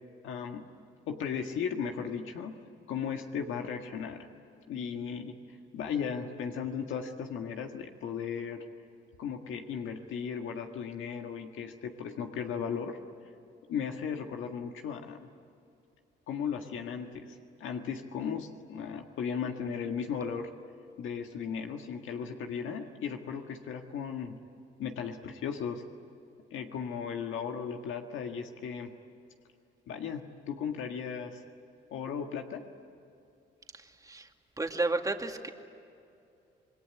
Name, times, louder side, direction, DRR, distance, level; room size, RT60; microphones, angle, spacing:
voice 1, 0.2-0.7 1.1-2.6 2.9-4.3 4.7-5.4 5.7-8.6 9.2-13.0 13.7-15.3 16.3-20.5 21.0-24.4 24.8-25.8 26.5-28.9 29.9-31.4 31.9-32.6, left 7 dB, 80° left, 4 dB, 1.7 m, -36 dB
voice 2, 33.7-34.3 34.6-35.5, right 2 dB, 15° right, 4 dB, 2.2 m, -32 dB
27.0 x 21.0 x 10.0 m, 2.6 s
cardioid pair, 90°, 20 cm